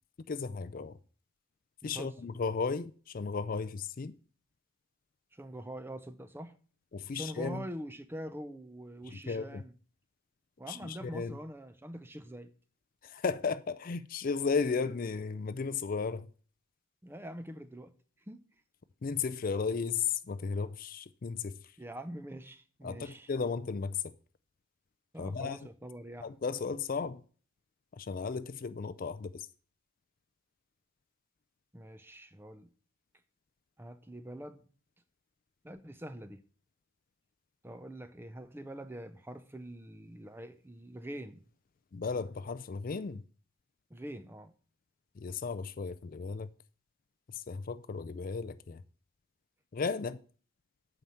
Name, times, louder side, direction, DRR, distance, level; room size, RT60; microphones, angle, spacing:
voice 1, 0.3-1.0 1.8-4.2 6.9-7.6 9.3-9.6 10.7-11.4 13.0-16.3 19.0-21.6 22.8-24.1 25.2-25.6 26.2-27.2 28.0-29.5 41.9-43.2 45.2-46.5 47.3-48.8 49.7-50.2, left 5 dB, 40° left, 0.4 m, -34 dB
voice 2, 1.8-2.3 5.3-6.6 7.1-9.7 10.6-12.5 17.0-17.9 18.3-18.4 21.8-23.3 25.1-26.3 31.7-32.7 33.8-34.7 35.6-36.4 37.6-41.4 43.9-44.5, right 1 dB, 10° right, 0.6 m, -44 dB
8.9 x 5.8 x 7.6 m
head